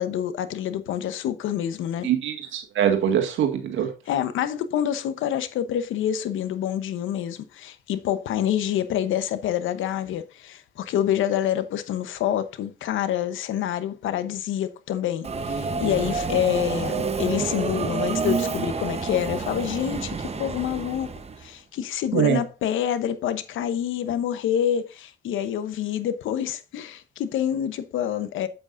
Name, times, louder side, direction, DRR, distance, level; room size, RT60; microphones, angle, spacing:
voice 1, 0.0-2.1 4.1-21.1 21.4-28.5, left 10 dB, 80° left, 1.0 m, -27 dB
voice 2, 2.0-3.9 22.1-22.4, right 9 dB, 80° right, 1.8 m, -23 dB
Subway metro underground, 15.2-21.5, right 4 dB, 30° right, 1.0 m, -29 dB
8.7 x 8.1 x 2.6 m
cardioid pair, 90°, 20 cm